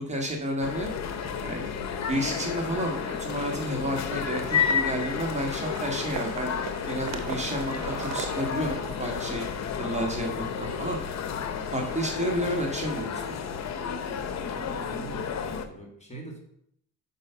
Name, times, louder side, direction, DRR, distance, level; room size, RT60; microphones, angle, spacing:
voice 1, 0.1-0.9 1.4-1.7 2.1-6.6 6.9-9.4 9.8-11.0 11.7-13.2, equal, 20° right, 1 dB, 1.6 m, -31 dB
sound 1, 0.6-15.7, left 7 dB, 60° left, 0.8 m, -32 dB
sound 2, 2.0-10.0, right 7 dB, 60° right, 0.9 m, -41 dB
voice 2, 14.5-16.4, right 2 dB, 20° left, 1 dB, 2.0 m, -43 dB
5.5 x 5.3 x 5.7 m, 0.72 s
cardioid pair, 90°, 30 cm